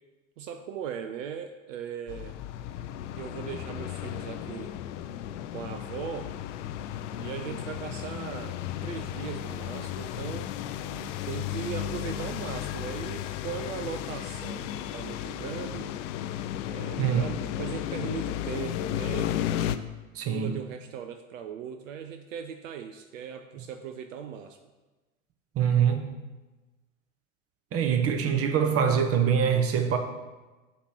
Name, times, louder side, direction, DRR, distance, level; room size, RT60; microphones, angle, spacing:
voice 1, 0.4-2.4 3.2-4.7 5.5-6.3 7.2-10.6 11.2-15.9 16.7-19.3 20.2-24.6, right 8 dB, 70° right, 8 dB, 0.6 m, -38 dB
sound 1, 2.1-19.8, left 11 dB, 65° left, 0.5 m, -34 dB
voice 2, 20.1-20.6 25.5-26.0 27.7-30.0, right 7 dB, 35° right, 6 dB, 0.9 m, -24 dB
8.4 x 3.1 x 5.9 m, 1.2 s
hypercardioid pair, 80°, 41 cm